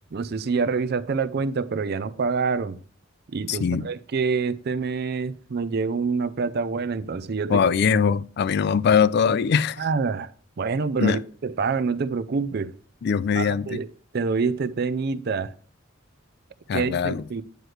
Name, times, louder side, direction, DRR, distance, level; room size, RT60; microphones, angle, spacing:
voice 1, 0.1-2.8 3.3-7.6 9.8-10.3 10.6-12.7 13.4-13.9 14.1-15.5 16.7-17.4, right 4 dB, 55° right, 0.5 m, -26 dB
voice 2, 3.5-3.9 7.5-9.9 11.0-11.2 13.0-13.8 16.7-17.3, left 6 dB, 55° left, 0.3 m, -22 dB
9.4 x 3.2 x 6.4 m
head